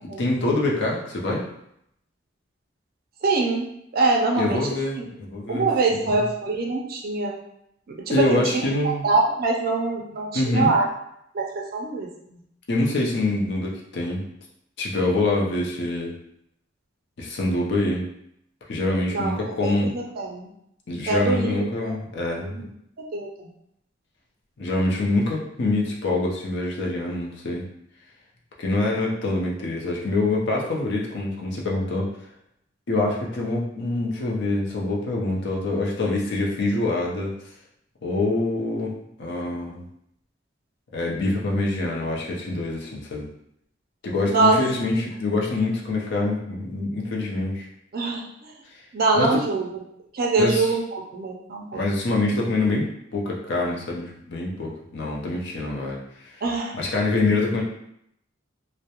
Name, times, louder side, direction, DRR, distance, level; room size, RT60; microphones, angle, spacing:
voice 1, 0.2-1.4 4.4-6.2 8.1-9.0 10.3-10.7 12.7-14.2 14.8-16.1 17.2-18.0 18.7-19.9 20.9-22.7 24.6-27.7 28.6-32.1 32.9-37.3 38.0-38.9 39.2-39.9 40.9-43.3 44.0-47.7 48.7-48.8 49.1-49.4 50.4-50.7 51.7-56.4 56.7-57.6, left 2 dB, 60° left, -2 dB, 0.5 m, -25 dB
voice 2, 3.2-4.6 5.0-5.1 5.5-7.4 7.9-10.8 11.3-12.4 19.1-19.3 19.6-20.5 21.1-22.0 22.3-22.7 23.0-23.5 44.3-44.6 47.9-48.5 48.9-49.7 50.1-51.8 56.4-56.8, right 3 dB, 50° right, 0 dB, 0.4 m, -24 dB
2.3 x 2.0 x 2.8 m, 0.76 s
head